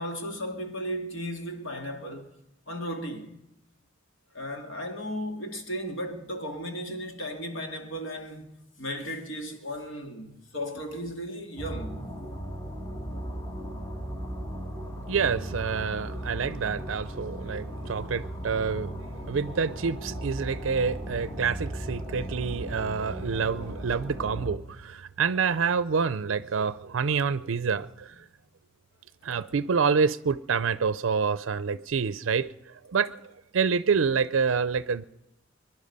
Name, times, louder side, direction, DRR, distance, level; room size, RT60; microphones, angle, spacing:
voice 1, 0.0-2.3 2.7-3.4 4.3-8.5 8.8-12.1, equal, 70° left, 2.3 m, -35 dB
sound 1, 11.6-24.6, equal, 15° left, 1.3 m, -37 dB
voice 2, 15.1-28.1 29.2-32.5 32.9-33.1 33.5-35.0, right 5 dB, 70° right, 0.5 m, -27 dB
23.5 x 11.0 x 5.4 m
head